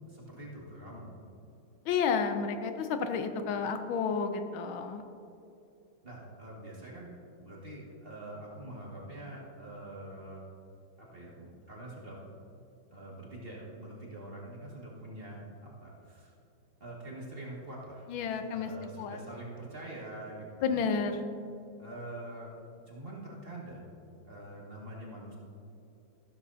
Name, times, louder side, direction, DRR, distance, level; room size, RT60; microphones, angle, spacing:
voice 1, 0.1-1.0 6.0-10.4 11.0-12.2 12.9-16.3 16.8-18.1 18.5-20.8 21.8-22.5 22.9-24.0 24.2-25.4, right 1 dB, 30° right, -5 dB, 2.2 m, -45 dB
voice 2, 1.9-5.0 18.1-18.7 19.0-19.2 20.6-21.2, left 5 dB, 85° left, 7 dB, 1.6 m, -31 dB
14.0 x 13.0 x 2.8 m, 2.7 s
omnidirectional pair, 2.1 m